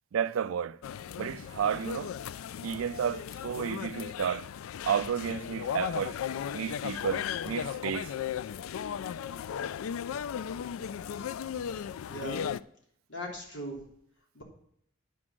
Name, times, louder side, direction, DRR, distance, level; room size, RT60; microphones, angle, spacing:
voice 1, 0.1-0.8 1.2-2.1 2.6-4.5 4.9-6.2 6.5-8.1, right 8 dB, 85° right, 0.4 m, -32 dB
sound 1, 0.8-12.6, left 8 dB, 90° left, 0.3 m, -36 dB
voice 2, 12.0-12.6 13.1-13.9 14.3-14.4, equal, 60° left, 3.0 m, -39 dB
9.7 x 6.2 x 6.1 m
head